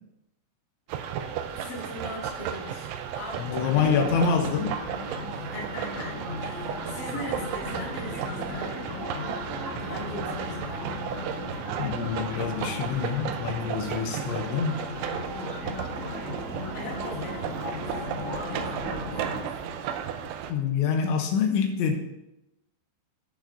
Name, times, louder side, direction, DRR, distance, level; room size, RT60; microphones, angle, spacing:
sound 1, 0.9-20.5, right 8 dB, 85° right, 3.0 m, -35 dB
voice 1, 1.6-4.5 5.3-8.9 9.7-11.0 16.7-18.0 18.3-19.9, left 1 dB, 35° left, -4 dB, 1.6 m, -41 dB
voice 2, 3.4-4.8 11.8-14.8 20.5-22.0, left 6 dB, 80° left, 4 dB, 3.2 m, -26 dB
sound 2, 3.4-19.4, left 1 dB, 65° right, 0.7 m, -37 dB
sound 3, 5.5-18.9, left 2 dB, 60° left, 1.6 m, -48 dB
17.0 x 6.3 x 2.7 m, 0.90 s
omnidirectional pair, 5.4 m